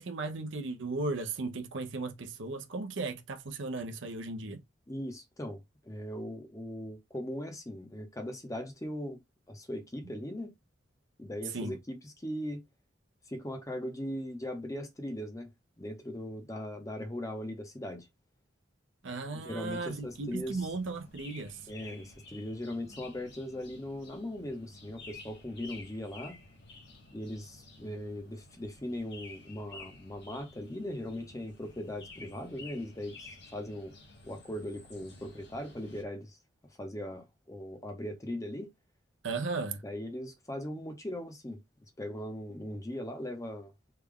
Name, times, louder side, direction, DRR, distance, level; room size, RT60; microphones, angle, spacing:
voice 1, 0.0-4.6 11.5-11.8 19.0-21.6 39.2-39.8, right 3 dB, 70° right, 0.6 m, -36 dB
voice 2, 4.9-9.2 9.5-10.5 11.2-12.6 13.3-15.5 15.8-18.1 19.3-20.6 21.7-26.4 27.1-33.9 34.2-36.4 36.8-38.7 39.8-41.6 42.0-43.7, left 1 dB, 15° left, 0.7 m, -39 dB
sound 1, 19.7-36.0, left 3 dB, 55° left, 1.1 m, -52 dB
3.3 x 2.3 x 3.6 m
head